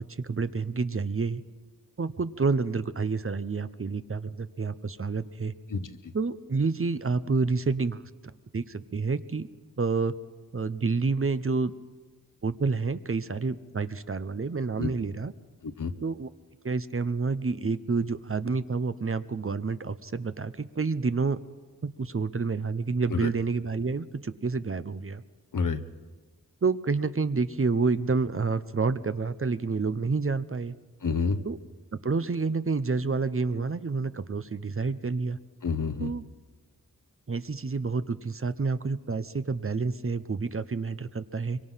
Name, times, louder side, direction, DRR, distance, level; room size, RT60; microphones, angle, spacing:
voice 1, 0.0-1.4 2.0-5.5 6.1-8.0 8.5-9.5 9.8-10.1 10.5-11.7 12.4-15.3 16.0-16.3 16.6-21.4 21.8-25.2 26.6-30.7 31.4-31.6 32.0-35.4 36.0-36.2 37.3-41.6, right 4 dB, 40° right, 13 dB, 0.8 m, -29 dB
voice 2, 5.7-6.1 14.8-14.9 15.6-15.9 23.1-23.3 25.5-25.8 31.0-31.4 35.6-36.1, left 5 dB, 65° left, 10 dB, 1.1 m, -29 dB
24.5 x 23.5 x 5.7 m, 1.3 s
wide cardioid pair, 75°, 34 cm